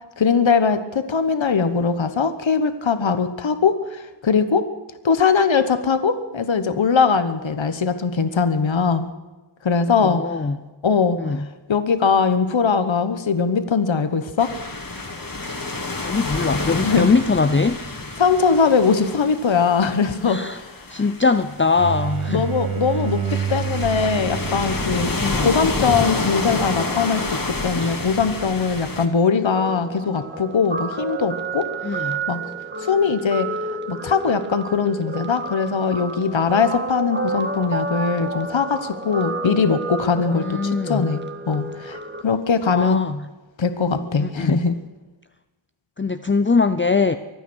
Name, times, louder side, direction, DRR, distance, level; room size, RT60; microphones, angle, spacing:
voice 1, 0.2-4.7 5.0-9.1 9.6-10.2 10.8-11.4 11.7-14.5 16.8-17.1 18.2-20.7 21.0-21.1 22.3-32.4 32.8-33.5 33.9-41.2 41.5-42.0 42.2-43.0 43.6-44.8, left 5 dB, 65° left, 10 dB, 1.2 m, -21 dB
voice 2, 10.0-10.7 11.2-11.5 16.0-17.8 20.2-20.6 20.9-22.5 25.2-25.5 27.8-28.0 31.8-32.2 40.4-41.1 42.7-43.3 44.2-44.6 46.0-47.1, left 4 dB, 25° left, 10 dB, 0.6 m, -22 dB
sound 1, 14.4-29.1, left 2 dB, 45° left, 2.2 m, -29 dB
sound 2, 21.8-27.3, right 8 dB, 80° right, 1.0 m, -30 dB
Guitar, 29.5-42.2, right 3 dB, 20° right, 1.7 m, -30 dB
24.5 x 9.2 x 6.3 m, 1.2 s
wide cardioid pair, 60°, 48 cm